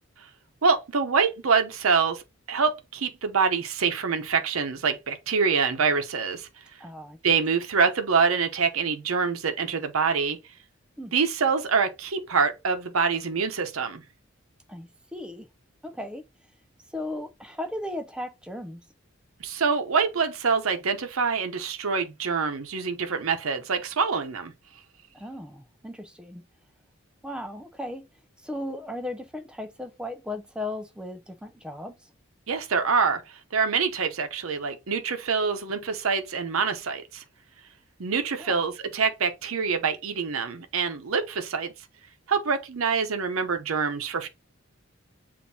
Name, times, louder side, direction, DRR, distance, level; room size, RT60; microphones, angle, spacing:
voice 1, 0.6-2.2 2.5-6.5 7.2-10.4 11.1-14.0 19.4-24.5 32.5-37.2 38.0-41.7 42.3-44.3, right 5 dB, 85° right, 0.7 m, -25 dB
voice 2, 6.8-7.2 11.0-11.1 14.7-15.5 15.8-16.2 16.9-18.8 25.1-26.4 27.2-28.1 28.4-31.9 38.4-38.6, left 1 dB, 5° right, 0.4 m, -36 dB
7.2 x 2.6 x 2.7 m
head